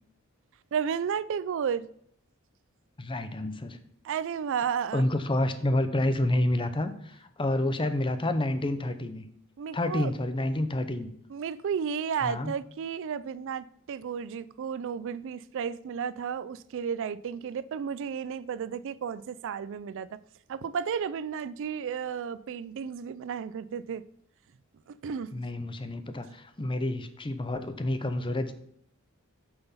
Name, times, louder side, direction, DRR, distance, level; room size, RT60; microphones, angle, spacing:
voice 1, 0.7-1.9 4.0-5.1 9.6-10.1 11.3-20.2 20.5-24.0 25.0-25.4, right 7 dB, 60° right, 0.4 m, -33 dB
voice 2, 3.0-3.8 4.9-9.3 9.7-11.1 12.2-12.5 25.3-28.5, left 1 dB, 25° left, 0.7 m, -29 dB
7.9 x 5.7 x 5.7 m
head